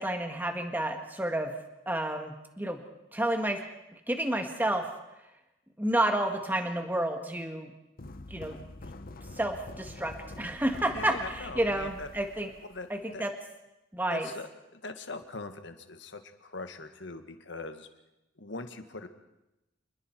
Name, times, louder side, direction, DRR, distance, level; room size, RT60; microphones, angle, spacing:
voice 1, 0.0-1.5 1.9-2.8 3.1-3.6 4.1-4.9 5.8-7.7 8.3-8.6 9.4-12.5 12.9-13.3 13.9-14.3, right 1 dB, 10° right, 5 dB, 1.7 m, -30 dB
sound 1, 8.0-13.2, left 2 dB, 50° left, 1.1 m, -46 dB
voice 2, 10.9-12.1 12.7-12.9 13.1-13.3 14.1-17.9 18.4-19.1, left 3 dB, 70° left, 7 dB, 1.9 m, -41 dB
28.0 x 21.0 x 4.6 m, 0.93 s
head